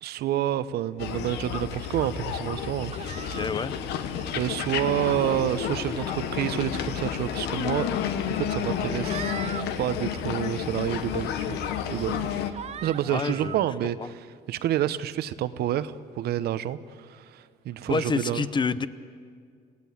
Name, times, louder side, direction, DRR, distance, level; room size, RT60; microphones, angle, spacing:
voice 1, 0.0-3.3 4.3-7.9 8.2-9.3 9.8-11.6 11.9-18.4, right 12 dB, 70° right, 13 dB, 0.9 m, -29 dB
sound 1, 1.0-12.5, left 8 dB, 85° left, 1.3 m, -31 dB
sound 2, 2.9-3.5 4.1-4.5 4.9-5.3 6.2-6.6 7.7-7.8 8.7-9.7 10.1-10.5 11.1-11.2 11.8-12.1 12.5-13.7, right 9 dB, 40° right, 0.5 m, -41 dB
voice 2, 3.3-3.8 13.1-13.6 14.0-14.1 17.9-18.9, left 4 dB, 25° left, 14 dB, 0.8 m, -28 dB
27.5 x 17.0 x 8.6 m, 2.2 s
cardioid pair, 110°, 17 cm